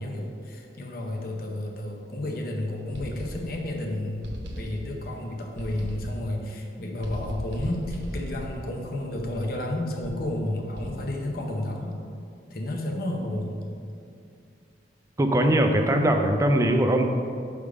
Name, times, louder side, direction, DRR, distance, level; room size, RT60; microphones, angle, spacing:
voice 1, 0.0-12.0 12.5-13.6, left 1 dB, 55° left, 0 dB, 0.7 m, -31 dB
sound 1, 2.9-3.8 4.2-5.2 5.6-6.4 7.0-9.5 10.0-10.3 10.8-11.3, equal, 85° right, 0.9 m, -38 dB
voice 2, 15.2-17.1, right 1 dB, 15° right, 4 dB, 0.4 m, -21 dB
6.4 x 3.5 x 4.8 m, 2.4 s
head